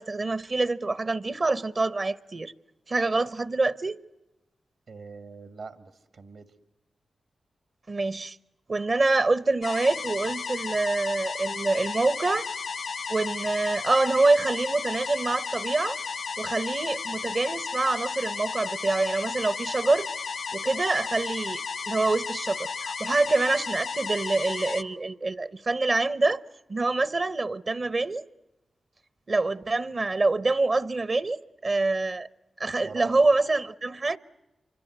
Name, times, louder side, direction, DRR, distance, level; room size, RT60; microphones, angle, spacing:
voice 1, 0.0-2.5 2.9-4.0 7.9-8.4 8.7-12.5 13.1-16.0 16.4-20.1 20.5-21.6 21.9-26.4 26.7-28.2 29.3-32.3 32.6-34.2, right 3 dB, 50° right, 0.8 m, -26 dB
voice 2, 4.9-6.5 32.8-33.2, right 4 dB, 75° right, 1.9 m, -42 dB
sound 1, 9.6-24.8, left 5 dB, 70° left, 0.9 m, -34 dB
26.5 x 24.5 x 7.9 m
supercardioid pair, 40°, 0 cm